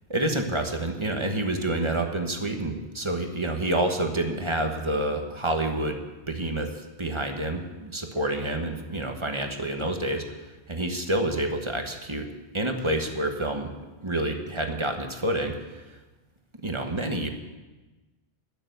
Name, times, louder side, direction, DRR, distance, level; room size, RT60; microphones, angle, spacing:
voice 1, 0.1-10.4 10.7-12.3 12.5-13.7 14.0-15.8 16.6-17.3, right 1 dB, 25° right, 4 dB, 1.3 m, -28 dB
13.5 x 6.9 x 9.4 m, 1.2 s
omnidirectional pair, 1.1 m